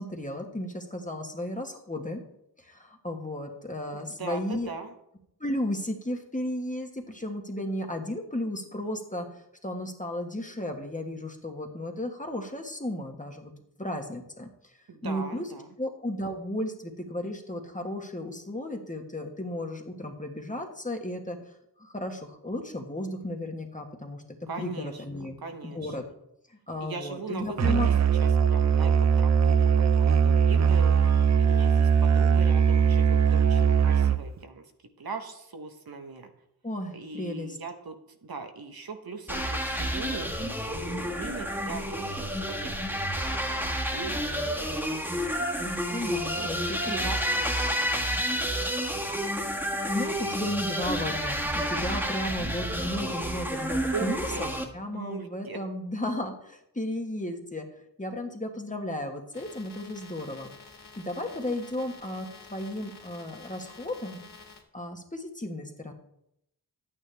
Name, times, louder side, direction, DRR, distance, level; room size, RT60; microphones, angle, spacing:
voice 1, 0.0-2.2 2.6-4.7 5.4-13.5 13.8-14.7 15.0-15.5 15.8-21.4 21.8-25.4 25.6-26.0 26.5-27.9 36.6-37.6 45.6-47.1 49.9-54.5 54.7-57.7 58.0-60.5 61.0-64.2 64.7-65.9, left 1 dB, 20° left, 3 dB, 1.5 m, -34 dB
voice 2, 3.9-4.9 14.9-15.7 24.5-25.0 25.4-26.0 26.8-27.9 28.2-34.6 35.0-36.3 36.9-40.3 40.7-45.5 46.0-48.6 53.9-54.5 54.9-55.6, right 4 dB, 60° right, 5 dB, 1.2 m, -40 dB
Musical instrument, 27.6-34.4, right 7 dB, 45° right, 0.5 m, -21 dB
sound 1, 39.3-54.6, equal, 5° right, 1.7 m, -30 dB
sound 2, 59.3-64.6, left 5 dB, 70° left, 2.1 m, -49 dB
10.5 x 9.0 x 3.4 m, 0.78 s
cardioid pair, 55°, 40 cm